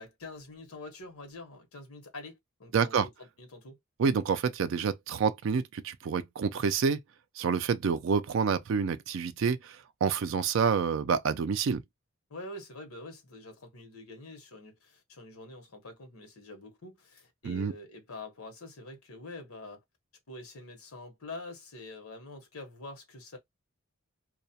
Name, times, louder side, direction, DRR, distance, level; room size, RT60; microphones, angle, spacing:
voice 1, 0.0-3.8 12.3-19.8 20.3-23.4, left 2 dB, 80° left, 0.9 m, -46 dB
voice 2, 2.7-3.1 4.0-7.0 7.4-11.8 17.4-17.7, right 6 dB, 60° right, 0.3 m, -28 dB
2.3 x 2.1 x 2.6 m
head